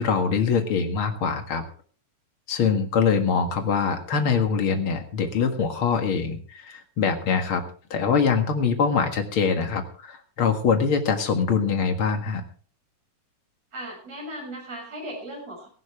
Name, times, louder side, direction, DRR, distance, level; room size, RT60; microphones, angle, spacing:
voice 1, 0.0-1.6 2.5-7.6 7.9-12.4, left 6 dB, 45° left, 6 dB, 2.2 m, -23 dB
voice 2, 13.7-15.7, right 1 dB, 50° right, 1 dB, 7.6 m, -37 dB
17.5 x 15.0 x 3.4 m, 0.43 s
omnidirectional pair, 3.9 m